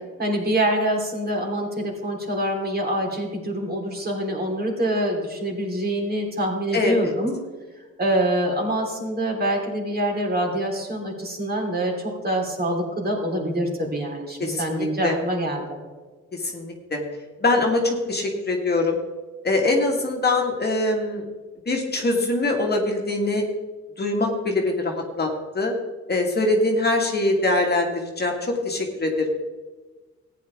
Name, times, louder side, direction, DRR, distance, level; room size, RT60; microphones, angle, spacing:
voice 1, 0.2-7.4 8.0-15.8, right 1 dB, 30° right, 0 dB, 3.3 m, -25 dB
voice 2, 14.4-15.2 16.3-17.0 17.4-19.0 19.4-21.2 21.7-23.4 24.0-25.3 25.5-25.7 26.1-29.3, left 2 dB, 35° left, 1 dB, 1.8 m, -23 dB
14.5 x 9.5 x 3.5 m, 1.3 s
cardioid pair, 90°, 30 cm